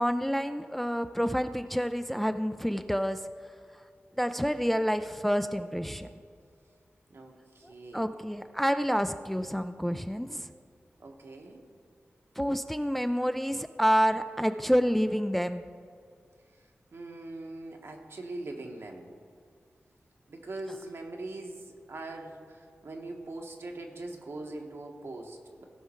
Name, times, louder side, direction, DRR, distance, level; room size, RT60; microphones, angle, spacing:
voice 1, 0.0-3.3 4.2-6.1 7.6-10.5 12.4-15.6, equal, 5° left, 9 dB, 0.4 m, -28 dB
voice 2, 7.1-8.0 11.0-11.6 16.9-19.2 20.3-25.6, right 2 dB, 70° right, 2 dB, 1.3 m, -42 dB
17.5 x 5.8 x 4.4 m, 2.3 s
wide cardioid pair, 100°, 4 cm